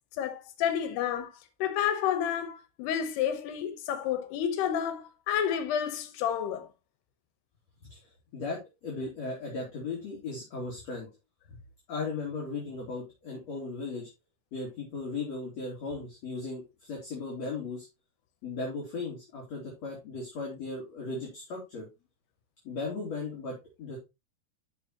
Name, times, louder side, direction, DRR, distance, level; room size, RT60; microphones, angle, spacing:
voice 1, 0.2-1.3 1.6-6.7, left 9 dB, 90° left, 3.2 m, -30 dB
voice 2, 7.9-11.1 11.5-11.6 11.9-14.1 14.5-17.9 18.4-21.9 22.6-24.0, left 3 dB, 45° left, 3.6 m, -37 dB
12.5 x 6.4 x 3.0 m
omnidirectional pair, 4.6 m